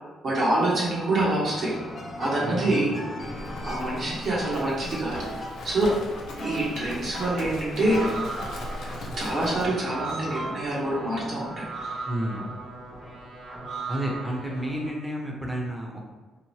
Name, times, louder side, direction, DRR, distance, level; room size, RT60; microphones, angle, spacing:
voice 1, 0.2-1.7 2.2-3.0 3.6-5.3 5.6-6.0 6.4-8.1 9.1-11.7, right 1 dB, 55° right, -5 dB, 0.8 m, -26 dB
sound 1, 1.4-10.5, left 1 dB, 35° left, 0.6 m, -38 dB
voice 2, 2.4-3.0 3.2-3.5 12.0-12.5 13.9-16.1, right 1 dB, 5° right, -1 dB, 0.6 m, -31 dB
Livestock farm animals working animals, 3.2-9.7, left 1 dB, 75° left, 0.5 m, -39 dB
sound 2, 7.8-14.9, right 3 dB, 85° right, 1.2 m, -38 dB
2.8 x 2.1 x 3.0 m, 1.3 s
cardioid pair, 90°, 0 cm